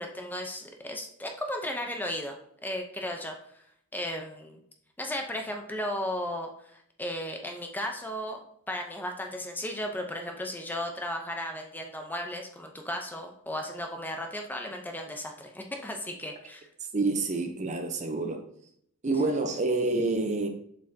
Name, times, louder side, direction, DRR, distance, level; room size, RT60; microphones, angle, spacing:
voice 1, 0.0-2.4 2.6-3.4 3.9-4.6 5.0-16.7, left 1 dB, 10° left, 0.7 m, -35 dB
voice 2, 16.9-18.5 19.0-20.5, right 3 dB, 35° right, 0.7 m, -28 dB
7.4 x 5.5 x 2.8 m
head